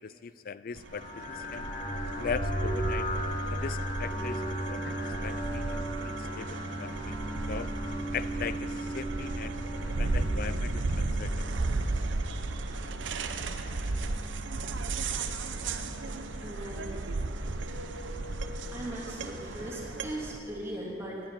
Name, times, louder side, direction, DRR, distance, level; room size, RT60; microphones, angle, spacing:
voice 1, 0.0-1.7 2.2-3.1 3.5-7.2 7.5-7.7 8.1-9.5 10.0-11.5, left 6 dB, 50° left, 15 dB, 0.4 m, -39 dB
sound 1, 0.8-20.4, right 3 dB, 90° right, 0.7 m, -34 dB
sound 2, 0.9-20.6, equal, 35° left, 2.1 m, -38 dB
voice 2, 16.4-16.9 18.7-21.2, right 1 dB, 15° right, -4 dB, 2.7 m, -39 dB
12.0 x 10.0 x 9.0 m, 2.8 s
head